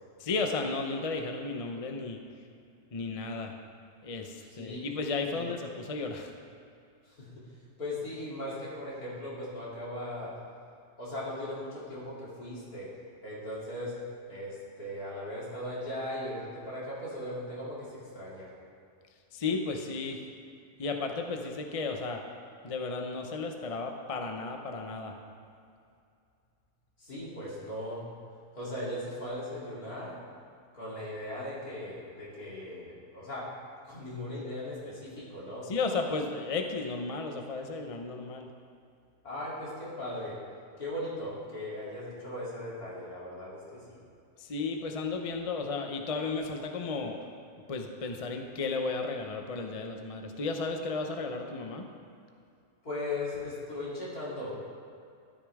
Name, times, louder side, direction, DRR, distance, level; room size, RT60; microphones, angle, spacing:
voice 1, 0.2-2.2 2.9-3.5 4.0-6.3 19.3-20.2 20.8-22.2 22.6-25.2 35.7-38.5 44.4-47.2 47.7-51.9, left 3 dB, 35° left, 4 dB, 0.6 m, -34 dB
voice 2, 4.6-4.9 5.3-5.4 7.1-7.4 7.8-10.3 11.0-12.9 13.2-13.9 14.3-18.5 27.0-28.0 28.5-30.2 30.7-33.5 33.8-35.7 39.2-40.4 40.8-44.0 52.8-54.6, left 1 dB, 70° left, -7 dB, 3.7 m, -38 dB
13.5 x 12.0 x 3.6 m, 2.4 s
omnidirectional pair, 1.6 m